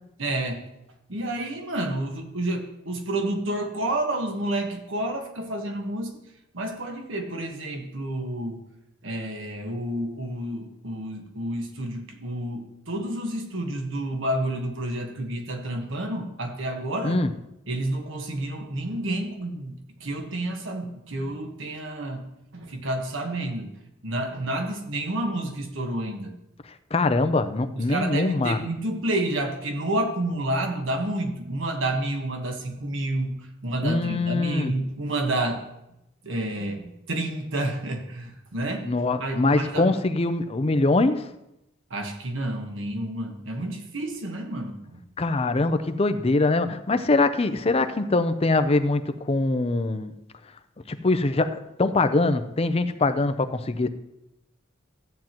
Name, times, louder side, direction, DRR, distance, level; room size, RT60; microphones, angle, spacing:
voice 1, 0.2-0.6 1.1-6.2 6.5-8.6 9.0-17.2 17.7-22.2 22.5-23.7 24.0-26.3 27.8-35.6 36.2-38.9 39.2-39.9 41.9-45.0, right 1 dB, 70° right, 4 dB, 1.4 m, -29 dB
voice 2, 26.9-28.6 33.8-34.7 38.8-41.3 45.2-50.1 50.9-53.9, left 2 dB, 30° left, 10 dB, 0.5 m, -23 dB
14.0 x 9.1 x 3.0 m, 0.87 s
head